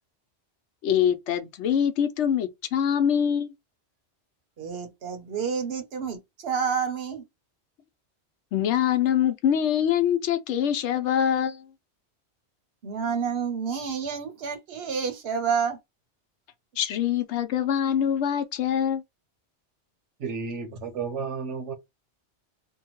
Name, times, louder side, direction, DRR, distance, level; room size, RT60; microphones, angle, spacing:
voice 1, 0.8-3.5 8.5-11.6 16.8-19.0, left 9 dB, 75° left, 0.9 m, -24 dB
voice 2, 4.6-7.2 12.8-15.8, right 6 dB, 60° right, 0.9 m, -29 dB
voice 3, 20.2-21.7, right 5 dB, 80° right, 1.2 m, -32 dB
2.7 x 2.2 x 2.9 m
omnidirectional pair, 1.2 m